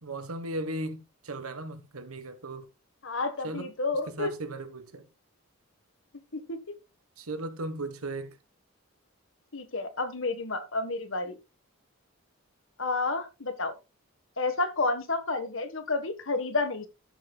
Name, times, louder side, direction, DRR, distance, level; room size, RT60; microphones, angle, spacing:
voice 1, 0.0-2.7 3.4-3.7 4.1-5.1 7.2-8.4, right 2 dB, 85° right, 1.4 m, -36 dB
voice 2, 3.0-4.3 6.3-6.7 9.5-11.4 12.8-13.7 14.4-16.9, left 3 dB, 65° left, 1.5 m, -30 dB
13.5 x 7.5 x 2.4 m
head